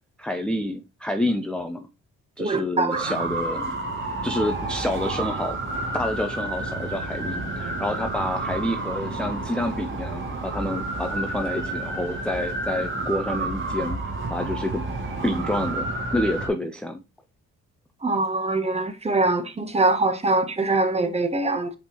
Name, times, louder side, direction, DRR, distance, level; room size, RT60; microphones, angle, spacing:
voice 1, 0.2-1.9 2.4-3.8 4.2-5.6 5.9-14.0 14.3-14.8 15.2-15.9 16.1-17.0, left 1 dB, 5° left, 0.4 m, -28 dB
voice 2, 2.4-3.0 18.0-21.7, right 2 dB, 20° right, 0.9 m, -23 dB
sound 1, 2.9-16.5, right 2 dB, 40° right, 1.6 m, -30 dB
5.1 x 3.5 x 2.9 m
cardioid pair, 90°, 30 cm